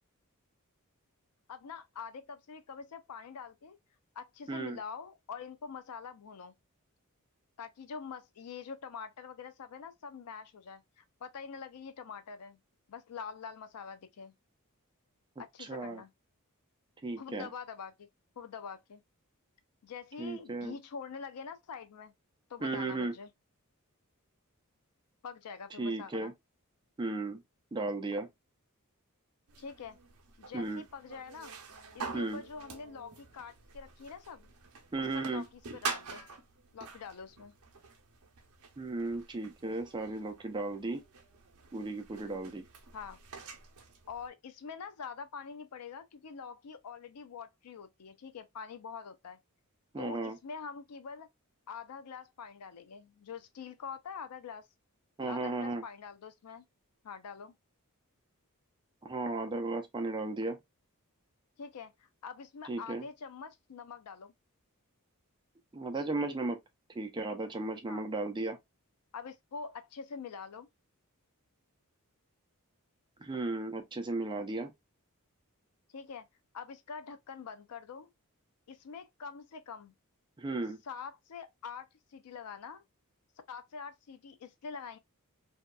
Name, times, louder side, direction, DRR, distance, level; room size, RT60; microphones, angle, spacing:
voice 1, 1.5-3.8 4.2-6.5 7.6-12.6 12.9-14.3 15.4-16.1 17.2-18.1 18.4-19.0 19.8-22.1 22.5-23.3 25.2-26.3 29.6-30.0 30.4-31.5 31.9-34.5 35.1-36.3 36.7-37.5 42.9-43.2 44.1-49.4 50.0-51.3 51.7-54.7 55.3-56.6 57.0-57.5 61.6-61.9 62.2-64.3 67.9-68.0 69.1-70.7 75.9-76.3 76.5-78.1 78.7-79.9 80.8-81.9 82.1-82.8 83.5-85.0, left 6 dB, 90° left, 0.5 m, -45 dB
voice 2, 15.6-16.0 17.0-17.5 20.2-20.7 22.6-23.1 25.8-26.3 27.0-27.4 27.7-28.3 30.5-30.8 32.1-32.4 34.9-35.4 38.8-41.0 41.7-42.6 49.9-50.4 55.2-55.8 59.0-60.6 62.7-63.1 65.7-66.6 67.0-68.6 73.2-74.7 80.4-80.8, right 2 dB, 20° right, 0.5 m, -35 dB
sound 1, 29.5-44.3, right 4 dB, 70° right, 0.7 m, -46 dB
2.7 x 2.3 x 2.2 m
head